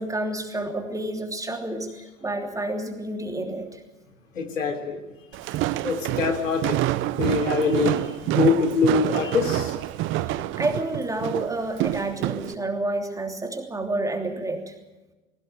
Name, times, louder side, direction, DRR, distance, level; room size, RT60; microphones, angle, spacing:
voice 1, 0.0-3.8 10.3-14.7, right 2 dB, 10° right, 3 dB, 3.0 m, -29 dB
voice 2, 4.3-5.1 5.8-6.8 7.1-9.8, left 5 dB, 80° left, 6 dB, 3.5 m, -24 dB
Walk footsteps, 5.3-12.5, right 15 dB, 30° right, 0.8 m, -27 dB
19.0 x 17.5 x 9.0 m, 1.1 s
hypercardioid pair, 100°, 38 cm